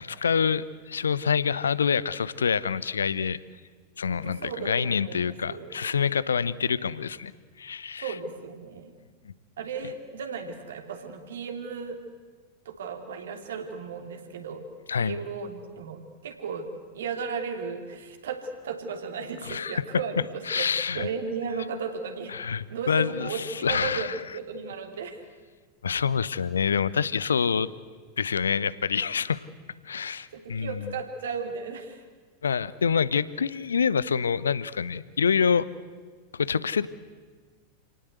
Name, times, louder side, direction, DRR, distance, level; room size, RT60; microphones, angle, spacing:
voice 1, 0.0-3.4 4.0-7.3 7.6-8.1 9.3-9.4 14.9-15.2 19.4-19.8 20.5-21.1 22.3-24.2 25.8-27.7 28.2-29.5 29.8-30.9 32.4-35.7 36.3-36.9, left 6 dB, 70° left, 19 dB, 0.8 m, -26 dB
voice 2, 4.0-5.8 8.0-8.9 9.6-12.0 12.6-14.7 15.0-16.7 16.9-22.3 22.7-25.2 30.0-32.0, right 5 dB, 60° right, 5 dB, 3.0 m, -35 dB
28.5 x 18.5 x 8.2 m, 1.5 s
figure-of-eight pair, 90°, 0 cm